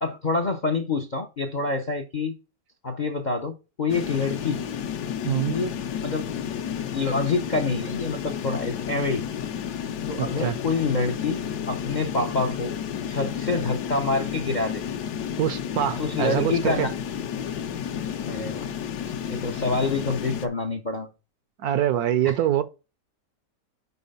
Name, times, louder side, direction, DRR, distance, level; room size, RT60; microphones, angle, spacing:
voice 1, 0.0-2.4 2.8-4.6 5.5-6.3 6.9-9.2 10.1-11.4 11.7-12.8 13.1-14.8 16.0-16.9 18.2-18.7 19.3-21.1 22.2-22.4, left 3 dB, 50° left, 0.5 m, -27 dB
sound 1, 3.9-20.5, left 8 dB, 65° left, 1.2 m, -31 dB
voice 2, 5.2-5.6 10.2-10.6 15.4-16.9 21.6-22.6, right 11 dB, 70° right, 1.0 m, -24 dB
5.5 x 4.7 x 5.3 m
omnidirectional pair, 1.9 m